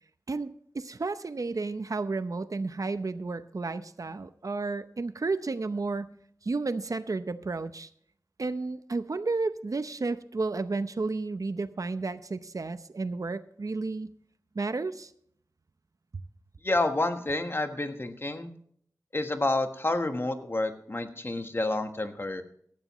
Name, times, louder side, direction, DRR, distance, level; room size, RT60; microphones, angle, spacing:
voice 1, 0.3-6.1 6.4-7.9 8.4-14.1 14.5-15.1, right 3 dB, 60° right, 12 dB, 0.7 m, -32 dB
voice 2, 16.6-18.5 19.1-22.4, left 2 dB, 35° left, 7 dB, 1.3 m, -29 dB
16.5 x 13.0 x 3.1 m, 0.63 s
wide cardioid pair, 80°, 7 cm